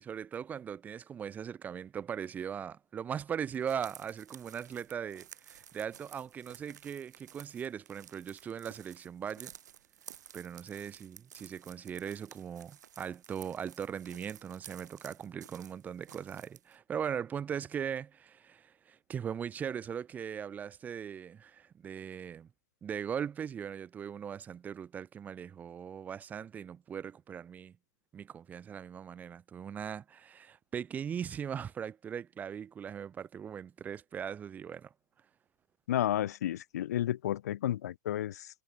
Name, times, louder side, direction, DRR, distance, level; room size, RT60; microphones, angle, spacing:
voice 1, 0.0-9.5 10.3-22.5 22.8-27.7 28.1-34.9, right 8 dB, 15° right, 0.9 m, -39 dB
sound 1, 3.5-16.8, right 10 dB, 60° right, 3.4 m, -54 dB
voice 2, 35.9-38.5, left 12 dB, 55° left, 0.4 m, -32 dB
figure-of-eight pair, 115°, 11 cm